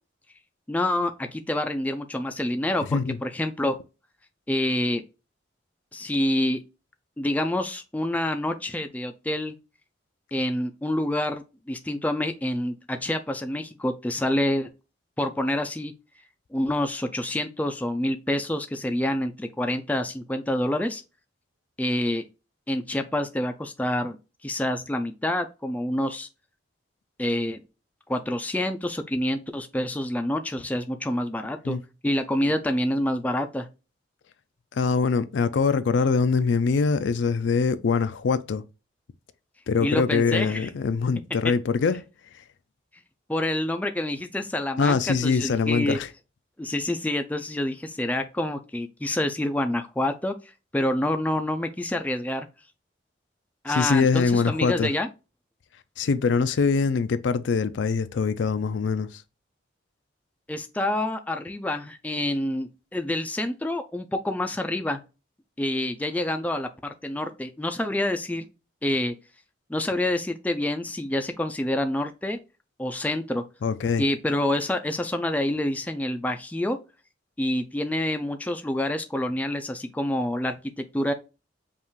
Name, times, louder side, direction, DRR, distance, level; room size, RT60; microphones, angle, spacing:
voice 1, 0.7-3.8 4.5-5.0 5.9-6.6 7.2-9.5 10.3-14.7 15.2-15.9 16.5-21.0 21.8-22.2 22.7-24.2 24.4-26.3 27.2-27.6 28.1-31.8 32.0-33.7 39.8-40.7 43.3-46.0 46.6-50.3 50.7-52.5 53.6-55.1 60.5-65.0 65.6-68.5 68.8-69.1 69.7-72.4 72.8-73.4 74.0-76.8 77.4-81.1, left 1 dB, 10° left, 0.3 m, -27 dB
voice 2, 34.7-38.6 39.7-42.0 44.8-46.1 53.7-54.9 56.0-59.2 73.6-74.0, left 5 dB, 75° left, 0.4 m, -23 dB
5.3 x 2.4 x 3.1 m
head